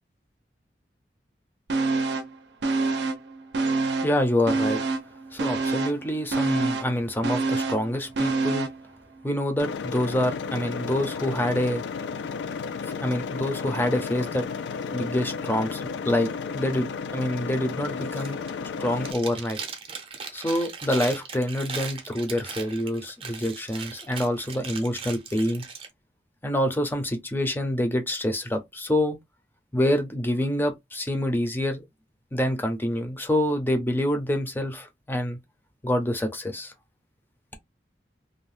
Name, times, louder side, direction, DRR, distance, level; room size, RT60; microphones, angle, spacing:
sound 1, 1.7-2.4 2.6-4.2 4.5-8.8 9.2-9.3, right 3 dB, 75° right, 0.5 m, -26 dB
voice 1, 4.0-4.8 5.3-8.7 9.2-11.8 12.8-14.5 14.9-16.3 16.5-18.5 18.8-19.6 20.3-25.6 26.4-29.2 29.7-31.8 32.3-35.4 35.8-36.7, left 1 dB, 10° left, 0.5 m, -26 dB
sound 2, 9.6-19.1, left 5 dB, 85° left, 0.3 m, -33 dB
Chewing mastication, 18.0-18.6 18.9-25.9, right 5 dB, 30° right, 0.6 m, -38 dB
2.6 x 2.0 x 3.2 m
head